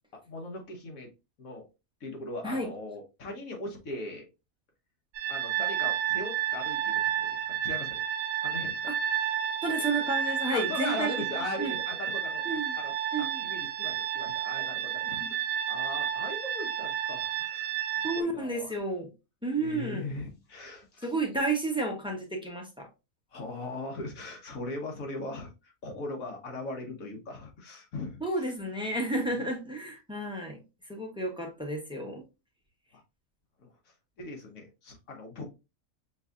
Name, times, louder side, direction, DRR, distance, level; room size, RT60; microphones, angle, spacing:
voice 1, 0.1-1.1 1.4-1.6 2.0-4.3 5.3-8.0 8.4-8.8 10.5-12.4 12.7-18.7 19.6-21.1 23.3-28.2 32.9-33.0 33.6-33.7 34.2-35.5, left 2 dB, 90° left, 1.5 m, -39 dB
sound 1, 5.2-18.2, right 10 dB, 85° right, 1.0 m, -31 dB
voice 2, 9.6-11.1 11.6-11.7 12.4-12.7 13.1-13.5 15.2-15.3 18.0-19.1 19.4-20.1 21.0-22.9 28.2-30.6 30.9-32.2, right 2 dB, 5° right, 0.7 m, -31 dB
6.1 x 2.7 x 2.4 m
omnidirectional pair, 1.4 m